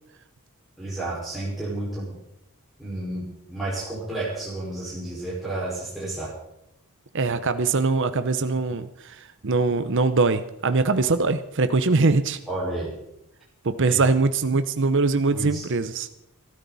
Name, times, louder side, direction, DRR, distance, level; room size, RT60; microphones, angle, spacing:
voice 1, 0.8-2.2 2.8-6.3 12.5-13.0 13.9-14.0 15.3-15.6, right 2 dB, ahead, -9 dB, 5.1 m, -31 dB
voice 2, 7.1-9.2 9.4-12.4 13.6-16.1, right 3 dB, 55° right, 11 dB, 0.8 m, -22 dB
23.0 x 13.0 x 4.2 m, 0.82 s
head